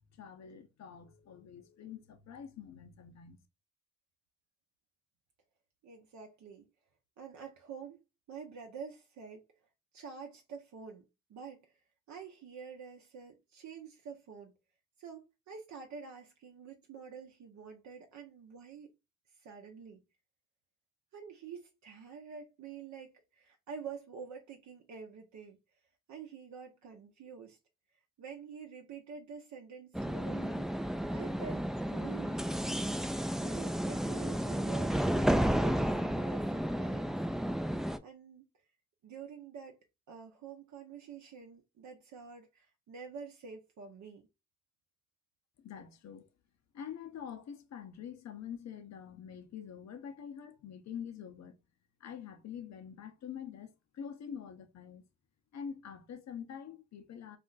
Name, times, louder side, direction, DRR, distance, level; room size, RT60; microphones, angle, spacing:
voice 1, 0.1-3.4 45.6-46.3 46.7-51.6 52.0-55.0 55.5-57.4, left 8 dB, 65° left, 0.7 m, -46 dB
voice 2, 5.8-6.7 7.2-8.0 8.3-9.4 9.9-11.7 12.1-14.5 15.0-18.9 19.4-20.0 21.1-25.6 26.1-27.6 28.2-32.5 33.3-37.2 38.0-38.5 39.0-39.8 40.1-44.3, right 6 dB, 75° right, 0.7 m, -48 dB
sound 1, 29.9-38.0, equal, ahead, 0.3 m, -32 dB
2.5 x 2.1 x 3.8 m
supercardioid pair, 45°, 29 cm